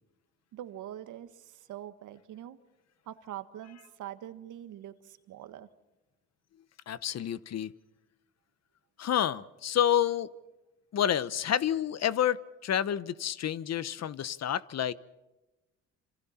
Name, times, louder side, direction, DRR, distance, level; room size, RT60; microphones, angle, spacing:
voice 1, 0.5-2.6 3.0-5.7, right 11 dB, 80° right, 11 dB, 1.6 m, -44 dB
voice 2, 6.9-7.7 9.0-10.3 10.9-14.9, left 10 dB, 60° left, 17 dB, 1.0 m, -29 dB
27.5 x 27.0 x 4.4 m, 1.0 s
cardioid pair, 90°, 30 cm